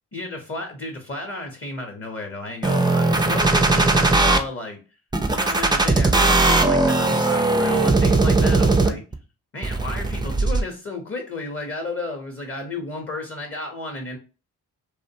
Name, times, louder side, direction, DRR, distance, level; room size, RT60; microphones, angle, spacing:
voice 1, 0.1-4.8 5.4-9.0 9.5-14.2, left 2 dB, 30° left, 1 dB, 0.8 m, -32 dB
sound 1, 2.6-4.4 5.1-9.1 9.6-10.6, right 2 dB, 10° right, 0.4 m, -19 dB
2.5 x 2.1 x 2.6 m, 0.33 s
supercardioid pair, 40°, 42 cm